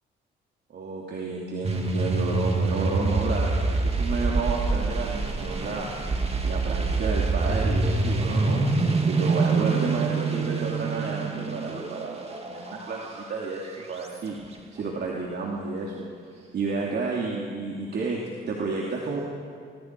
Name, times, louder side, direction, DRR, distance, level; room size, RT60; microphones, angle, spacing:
voice 1, 0.7-5.9 6.4-14.4 14.7-16.1 16.3-19.2, right 3 dB, 55° right, -3 dB, 2.9 m, -31 dB
sound 1, 1.6-14.1, right 3 dB, 30° right, 2.6 m, -26 dB
25.5 x 22.5 x 4.8 m, 2.2 s
cardioid pair, 90°, 20 cm